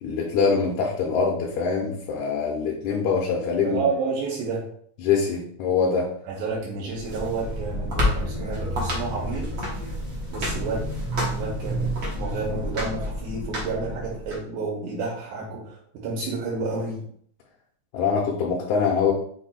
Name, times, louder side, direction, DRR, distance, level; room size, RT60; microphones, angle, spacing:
voice 1, 0.0-3.8 5.0-6.1 17.9-19.1, left 5 dB, 80° left, -2 dB, 2.0 m, -24 dB
voice 2, 3.6-4.6 6.3-9.5 10.3-10.9 11.3-17.1, right 3 dB, 90° right, -3 dB, 2.4 m, -30 dB
sound 1, 6.9-14.4, equal, 60° right, 0.8 m, -29 dB
5.4 x 2.2 x 4.2 m, 0.62 s
omnidirectional pair, 3.4 m